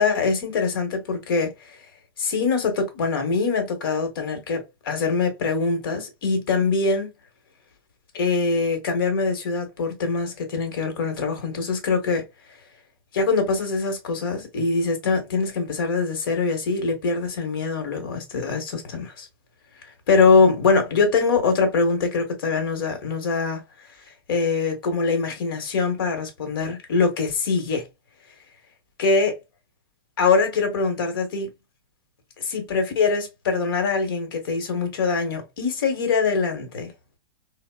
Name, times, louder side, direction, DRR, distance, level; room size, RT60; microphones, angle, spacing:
voice 1, 0.0-1.5 2.2-7.1 8.1-12.2 13.1-19.3 20.1-23.6 24.3-27.8 29.0-29.3 30.2-31.5 32.4-36.9, left 4 dB, 65° left, 1.2 m, -23 dB
3.5 x 2.1 x 2.2 m
supercardioid pair, 170°, 13 cm